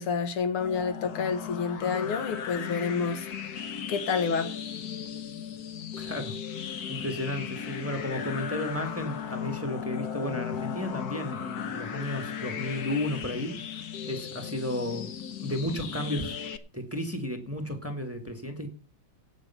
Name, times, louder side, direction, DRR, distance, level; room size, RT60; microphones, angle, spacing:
voice 1, 0.0-3.3 3.9-4.6, left 5 dB, 85° left, 9 dB, 2.3 m, -29 dB
sound 1, 0.6-16.6, left 8 dB, 55° left, 1.2 m, -36 dB
voice 2, 6.0-15.1 15.4-16.3 16.7-18.7, left 1 dB, 5° right, 5 dB, 1.5 m, -33 dB
17.0 x 6.6 x 5.7 m, 0.37 s
omnidirectional pair, 2.3 m